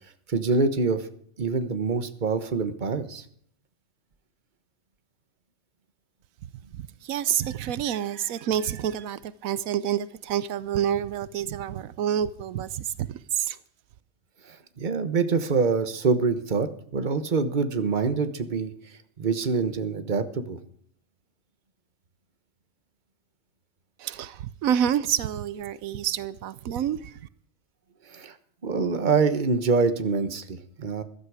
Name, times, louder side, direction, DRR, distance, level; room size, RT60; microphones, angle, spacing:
voice 1, 0.3-1.1 1.4-3.2 14.5-18.7 19.2-20.6 28.1-28.3 28.6-31.0, right 4 dB, 35° right, 10 dB, 1.3 m, -25 dB
voice 2, 6.7-13.6 24.0-27.2, right 9 dB, 90° right, 17 dB, 1.1 m, -28 dB
14.5 x 12.5 x 4.9 m, 0.62 s
omnidirectional pair, 1.4 m